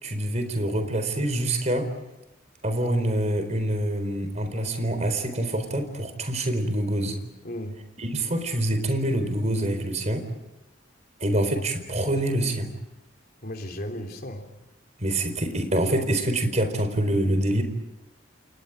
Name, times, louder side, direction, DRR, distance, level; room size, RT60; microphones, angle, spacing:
voice 1, 0.0-1.9 2.6-7.2 8.0-10.3 11.2-12.7 15.0-17.6, right 1 dB, 35° right, 8 dB, 4.3 m, -26 dB
voice 2, 7.4-7.8 13.4-14.5, equal, 50° left, 4 dB, 3.6 m, -35 dB
29.5 x 28.5 x 5.0 m, 0.95 s
head